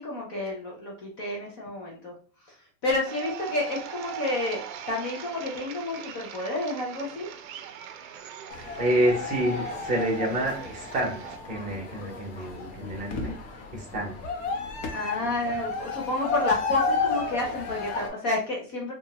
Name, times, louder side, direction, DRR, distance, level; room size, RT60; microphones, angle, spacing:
voice 1, 0.0-2.1 2.8-4.6 4.9-7.3 14.9-18.9, left 2 dB, 20° left, -2 dB, 0.3 m, -30 dB
sound 1, 3.1-11.4, right 9 dB, 60° right, 0.6 m, -41 dB
sound 2, 8.5-18.1, left 4 dB, 45° left, 0.7 m, -32 dB
voice 2, 8.8-11.2 11.4-13.3 13.7-14.2 15.2-15.6, right 1 dB, 15° right, -1 dB, 0.8 m, -28 dB
2.8 x 2.3 x 2.8 m, 0.39 s
supercardioid pair, 145°, 47 cm